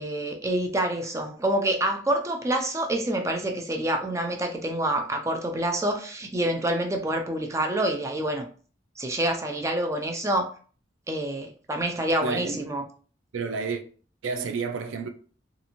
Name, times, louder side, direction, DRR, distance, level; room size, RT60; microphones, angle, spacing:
voice 1, 0.0-8.5 9.0-10.5 11.1-12.8, right 1 dB, 15° right, 0.4 m, -27 dB
voice 2, 12.2-12.6 13.3-13.8 14.2-15.1, right 4 dB, 90° right, 0.4 m, -30 dB
2.5 x 2.5 x 2.9 m
head